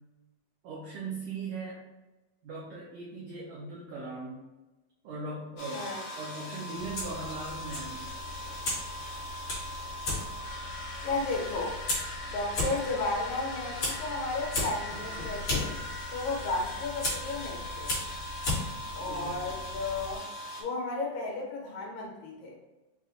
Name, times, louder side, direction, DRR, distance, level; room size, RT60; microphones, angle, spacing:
voice 1, 0.6-1.8 2.4-4.4 5.0-5.9 6.1-8.0 19.0-19.5, right 3 dB, 85° right, -5 dB, 1.5 m, -39 dB
sound 1, 5.6-20.6, equal, 65° left, 1.7 m, -40 dB
voice 2, 5.7-6.0 11.0-11.8 12.3-15.7 16.1-17.9 18.9-20.2 20.6-22.6, left 3 dB, 85° left, -1 dB, 2.7 m, -33 dB
Fire, 6.8-20.2, left 2 dB, 50° left, 1.9 m, -37 dB
6.0 x 2.5 x 2.6 m, 1.1 s
omnidirectional pair, 4.0 m